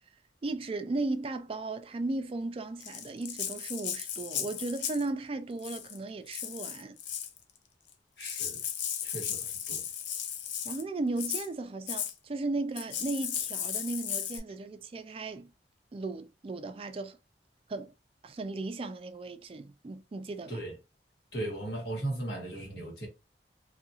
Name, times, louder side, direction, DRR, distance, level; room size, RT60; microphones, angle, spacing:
voice 1, 0.4-7.0 10.6-15.5 15.9-17.2 17.7-17.9 18.2-20.6, right 2 dB, 30° right, 0.3 m, -36 dB
Rattle (instrument), 2.8-5.1 5.6-6.0 6.3-7.4 7.9-8.0 8.2-10.8 11.2-11.5 11.9-12.1 12.8-14.4, left 9 dB, 85° left, 0.5 m, -36 dB
voice 2, 8.2-8.6 9.0-9.8 20.5-20.7 21.3-23.1, right 1 dB, 70° left, 1.5 m, -37 dB
2.7 x 2.5 x 2.7 m
head